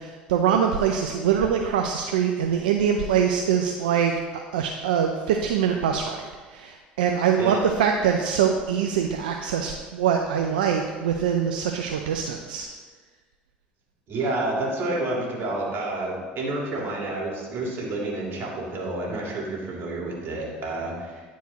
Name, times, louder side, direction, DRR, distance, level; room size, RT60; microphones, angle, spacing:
voice 1, 0.0-12.7, right 8 dB, 85° right, 3 dB, 0.4 m, -24 dB
voice 2, 14.1-21.2, right 2 dB, 50° right, -1 dB, 2.1 m, -29 dB
9.5 x 4.6 x 4.1 m, 1.4 s
hypercardioid pair, 70°, 5 cm